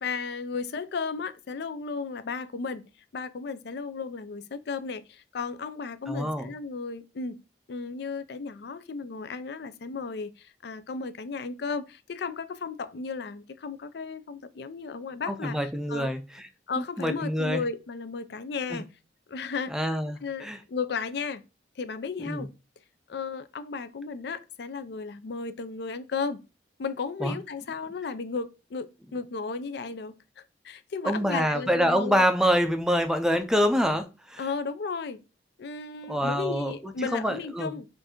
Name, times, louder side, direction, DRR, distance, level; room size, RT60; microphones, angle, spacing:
voice 1, 0.0-2.8 3.1-7.4 7.7-16.1 16.7-18.9 19.3-19.9 20.2-21.4 21.8-22.5 23.1-26.4 26.8-32.2 34.4-35.2 35.6-37.9, left 4 dB, 65° left, 0.5 m, -34 dB
voice 2, 6.1-6.5 15.3-16.2 17.0-17.6 18.7-18.8 19.7-20.6 22.2-22.5 27.2-27.4 31.0-34.4 36.1-37.8, equal, 5° right, 0.4 m, -26 dB
4.5 x 2.5 x 4.3 m
head